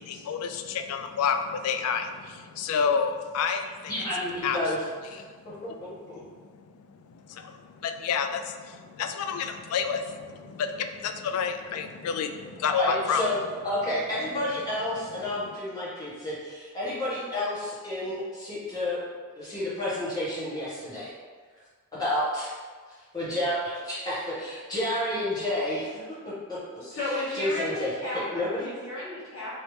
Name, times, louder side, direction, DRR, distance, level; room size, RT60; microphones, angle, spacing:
voice 1, 0.0-3.9 4.4-4.6 5.1-5.8 6.4-13.2 15.2-15.5, left 6 dB, 90° left, 10 dB, 0.3 m, -30 dB
voice 2, 3.9-4.8 5.0-5.5 5.8-6.2 12.8-13.4 13.6-19.0 19.4-21.1 21.9-22.5 23.1-25.9 26.2-27.0 27.3-28.7, left 1 dB, 20° left, -10 dB, 1.1 m, -30 dB
voice 3, 26.8-29.6, left 1 dB, 65° left, -11 dB, 1.3 m, -33 dB
3.1 x 2.8 x 3.1 m, 1.5 s
head